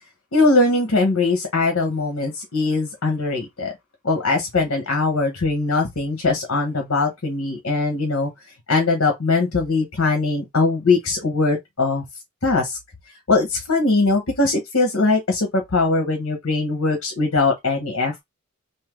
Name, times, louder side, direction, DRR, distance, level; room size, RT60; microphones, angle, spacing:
voice 1, 0.3-3.7 4.0-8.3 8.7-12.0 12.4-12.8 13.3-18.2, left 3 dB, 65° left, 1.0 m, -21 dB
3.3 x 2.7 x 3.6 m
head